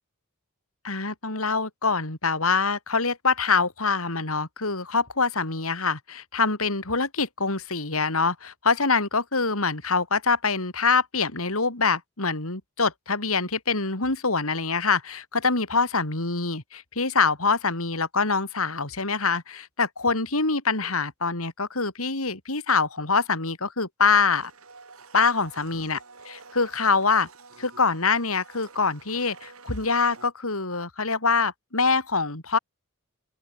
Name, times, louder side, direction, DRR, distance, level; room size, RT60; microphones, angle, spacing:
voice 1, 0.8-24.5 25.1-26.0 26.3-27.3 27.6-32.6, left 4 dB, 75° left, 4.0 m, -25 dB
Domestic sounds home sounds, 24.0-30.3, right 4 dB, 80° right, 7.5 m, -49 dB
open air
head